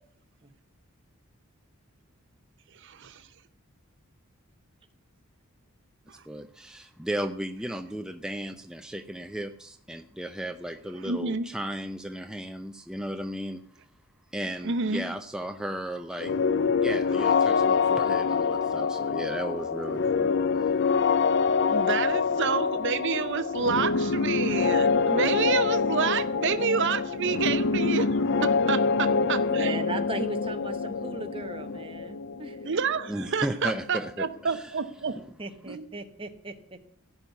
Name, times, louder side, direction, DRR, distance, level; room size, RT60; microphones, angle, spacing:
voice 1, 2.7-3.3 6.1-6.2 11.0-11.5 14.6-15.1 21.7-29.9 32.7-35.2 35.7-35.9, right 5 dB, 55° right, 11 dB, 0.7 m, -29 dB
voice 2, 6.3-13.6 14.3-16.3 16.8-20.8 33.1-34.7 35.1-35.2, right 1 dB, 5° right, 6 dB, 0.5 m, -35 dB
sound 1, 16.2-33.8, left 5 dB, 50° left, 0.4 m, -26 dB
voice 3, 22.3-22.6 29.3-32.6 35.4-36.9, right 2 dB, 25° right, 6 dB, 1.2 m, -38 dB
16.0 x 5.5 x 9.3 m, 0.64 s
head